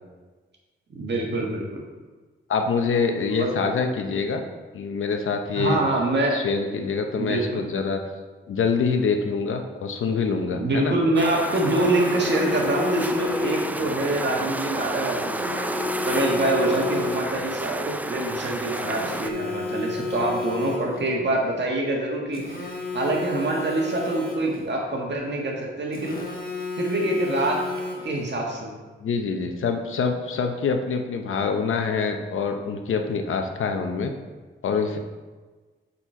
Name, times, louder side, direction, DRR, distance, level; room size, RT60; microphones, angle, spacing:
voice 1, 0.9-1.8 3.4-3.5 5.5-6.4 7.2-7.6 10.5-15.7 16.0-22.6 22.9-26.2 26.8-27.7 28.0-28.7, right 1 dB, 60° right, -1 dB, 1.6 m, -25 dB
voice 2, 2.5-4.4 4.7-5.8 6.3-8.0 8.5-10.9 29.0-34.1 34.6-35.0, left 5 dB, 80° left, 5 dB, 0.7 m, -25 dB
sound 1, 11.1-19.3, right 1 dB, 10° right, 0.3 m, -31 dB
Telephone, 11.5-13.9 15.2-17.5 18.7-21.1 22.3-24.7 25.9-28.3, left 3 dB, 45° left, 1.5 m, -32 dB
7.2 x 4.3 x 4.4 m, 1.3 s
cardioid pair, 80°, 21 cm